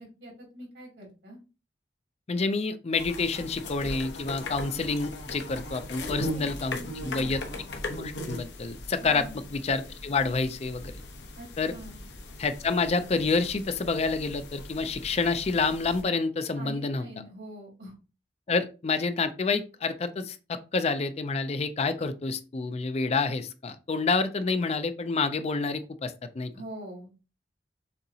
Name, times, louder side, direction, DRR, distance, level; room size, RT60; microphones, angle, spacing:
voice 1, 0.0-1.4 5.9-7.4 9.0-9.4 11.4-12.0 16.5-17.9 26.5-27.1, equal, 85° right, -1 dB, 2.8 m, -43 dB
voice 2, 2.3-6.8 7.0-7.4 8.0-9.3 9.5-10.9 11.6-11.7 12.4-17.0 18.5-26.5, left 4 dB, 35° left, 10 dB, 0.4 m, -28 dB
sound 1, 3.0-16.0, left 1 dB, 75° left, 0.9 m, -39 dB
6.6 x 2.8 x 2.8 m, 0.31 s
head